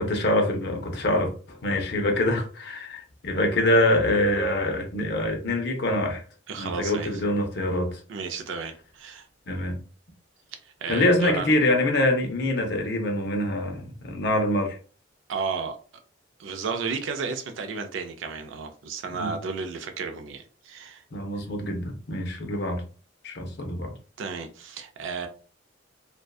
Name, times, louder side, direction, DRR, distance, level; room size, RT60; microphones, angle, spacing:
voice 1, 0.0-6.2 6.6-8.0 9.5-9.8 10.9-14.8 19.1-19.4 21.1-22.8 23.2-23.9, left 1 dB, 60° left, 0.6 m, -25 dB
voice 2, 6.5-7.1 8.1-9.3 10.6-11.5 15.3-15.8 16.4-21.0 24.2-25.3, right 5 dB, 85° right, 0.4 m, -33 dB
2.5 x 2.2 x 2.3 m
head